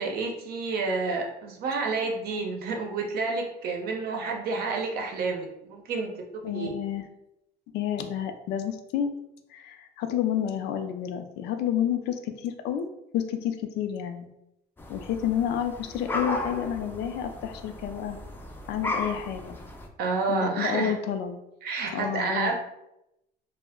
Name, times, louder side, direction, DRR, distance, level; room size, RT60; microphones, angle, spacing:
voice 1, 0.0-6.1 6.5-6.7 20.0-20.9 21.6-22.5, right 4 dB, 65° right, 2 dB, 0.6 m, -29 dB
voice 2, 6.4-7.0 7.7-9.1 9.5-12.9 13.1-14.3 14.9-18.2 18.7-19.6 20.3-21.4 21.9-22.5, left 9 dB, 80° left, 7 dB, 0.4 m, -30 dB
sound 1, 14.8-19.9, left 2 dB, 10° left, 0.4 m, -35 dB
2.2 x 2.1 x 3.5 m, 0.87 s
cardioid pair, 110°, 17 cm